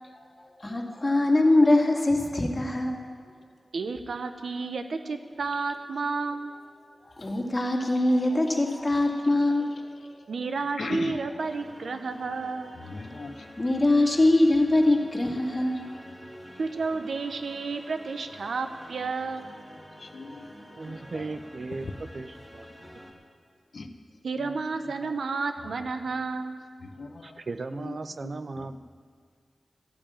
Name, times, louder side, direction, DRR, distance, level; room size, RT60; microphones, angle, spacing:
voice 1, 0.1-3.0 7.0-10.2 13.6-15.9, left 2 dB, 30° left, 2 dB, 2.2 m, -23 dB
voice 2, 3.7-6.5 10.3-12.8 16.6-19.5 24.2-26.6, right 4 dB, 80° right, 8 dB, 0.9 m, -31 dB
voice 3, 10.8-11.2 12.8-13.5 14.0-14.1 19.9-21.4 21.7-22.0 23.7-24.0 24.3-25.2 25.6-26.1 26.8-28.0 28.2-28.8, left 3 dB, 70° left, 7 dB, 1.1 m, -40 dB
sound 1, 11.4-23.1, equal, 5° right, 3.3 m, -48 dB
voice 4, 20.8-21.9 22.1-22.7 27.2-28.8, right 3 dB, 60° right, 11 dB, 0.6 m, -36 dB
14.0 x 8.8 x 8.9 m, 2.1 s
cardioid pair, 55°, 0 cm